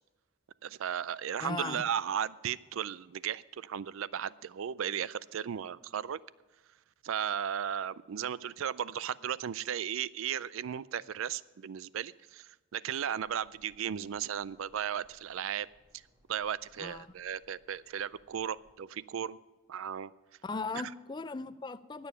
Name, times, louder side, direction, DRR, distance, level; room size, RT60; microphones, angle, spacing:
voice 1, 0.6-6.2 7.0-15.7 16.3-19.4 19.7-20.1, right 9 dB, 75° right, 19 dB, 0.4 m, -35 dB
voice 2, 1.4-1.8 16.8-17.1 20.4-22.1, left 3 dB, 20° left, 14 dB, 0.3 m, -38 dB
sound 1, 13.2-18.7, equal, 20° right, 1.8 m, -68 dB
18.5 x 7.0 x 5.6 m, 1.2 s
head